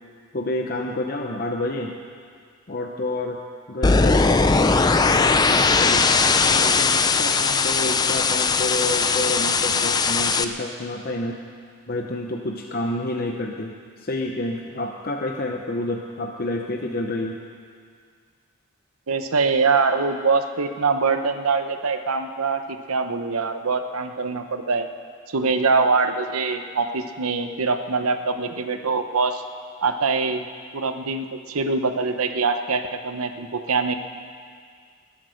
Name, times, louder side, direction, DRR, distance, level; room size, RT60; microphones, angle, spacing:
voice 1, 0.3-1.9 2.7-3.4 3.7-4.7 5.0-6.1 6.5-11.4 11.9-17.4, left 2 dB, 45° left, 2 dB, 0.8 m, -29 dB
sound 1, 3.8-10.4, left 4 dB, 20° left, 0.4 m, -19 dB
voice 2, 19.1-22.6 22.9-24.9 25.3-29.4 29.8-30.4 30.7-33.9, right 4 dB, 85° right, 8 dB, 0.9 m, -23 dB
20.0 x 8.9 x 6.4 m, 2.1 s
head